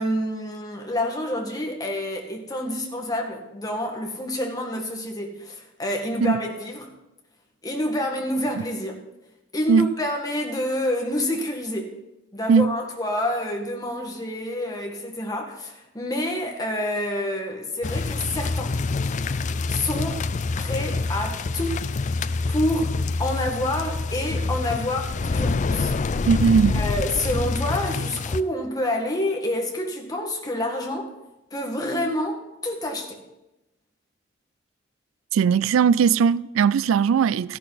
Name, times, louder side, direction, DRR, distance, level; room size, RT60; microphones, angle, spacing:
voice 1, 0.0-6.9 7.6-9.0 9.5-12.0 12.3-18.8 19.7-20.3 20.6-21.8 22.5-25.9 26.7-31.1 31.5-33.2, left 1 dB, 20° left, 1.8 m, -28 dB
sound 1, 17.8-28.4, left 3 dB, 40° left, 0.4 m, -26 dB
voice 2, 26.3-26.8 35.3-37.6, right 6 dB, 85° right, 0.3 m, -19 dB
14.5 x 11.0 x 4.1 m
head